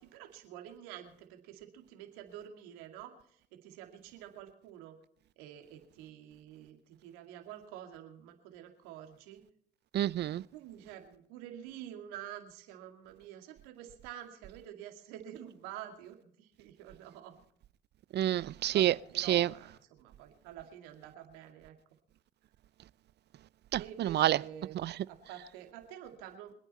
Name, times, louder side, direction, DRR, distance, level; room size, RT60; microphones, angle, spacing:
voice 1, 0.0-3.1 3.5-5.0 5.4-9.4 10.5-17.4 18.7-21.7 23.8-24.8 25.1-26.5, right 11 dB, 85° right, 2.4 m, -48 dB
voice 2, 9.9-10.4 18.1-19.5 23.7-24.4 24.8-24.9, right 12 dB, 55° right, 0.5 m, -28 dB
26.0 x 9.2 x 4.2 m
hypercardioid pair, 60°, 21 cm